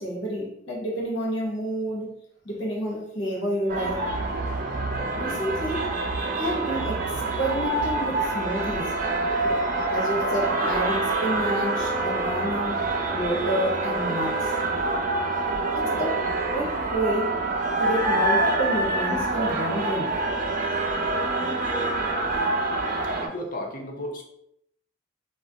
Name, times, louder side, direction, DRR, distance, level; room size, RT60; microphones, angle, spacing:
voice 1, 0.0-2.1 2.4-4.1 5.1-5.9 6.4-9.1 9.4-9.6 9.9-12.9 13.1-14.5 15.3-15.4 15.8-17.4 17.8-20.2, right 1 dB, 70° left, 0.9 m, -29 dB
sound 1, 3.7-23.3, right 2 dB, 40° right, 0.4 m, -26 dB
voice 2, 23.2-24.2, left 1 dB, 45° left, 0.5 m, -34 dB
2.3 x 2.0 x 3.8 m
head